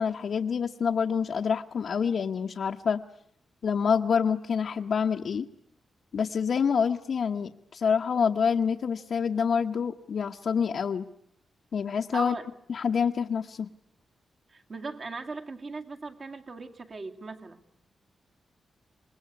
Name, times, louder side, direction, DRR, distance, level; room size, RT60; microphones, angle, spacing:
voice 1, 0.0-3.0 3.6-5.5 6.1-11.1 11.7-12.3 12.7-13.7, left 6 dB, 65° left, 2 dB, 1.0 m, -27 dB
voice 2, 12.1-12.5 14.5-17.6, right 3 dB, 45° right, 4 dB, 2.2 m, -38 dB
26.0 x 21.0 x 9.6 m, 0.70 s
wide cardioid pair, 115°, 0 cm